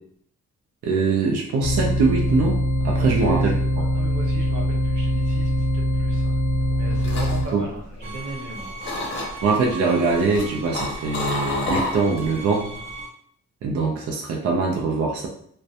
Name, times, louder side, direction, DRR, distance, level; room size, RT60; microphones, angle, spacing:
voice 1, 0.8-3.9 7.5-7.6 9.4-12.7 13.6-15.3, right 4 dB, 55° right, 0 dB, 0.4 m, -23 dB
sound 1, 1.6-7.5, equal, 80° left, 0.5 m, -22 dB
voice 2, 3.0-6.3 6.8-8.7, right 2 dB, 90° right, -1 dB, 0.8 m, -36 dB
sound 2, 6.6-8.5 8.8-9.6 10.1-12.4 12.7-13.0, left 2 dB, 40° left, 0.7 m, -29 dB
sound 3, 8.0-13.1, right 2 dB, 30° right, 0.8 m, -38 dB
2.4 x 2.1 x 2.7 m, 0.64 s
wide cardioid pair, 180°, 29 cm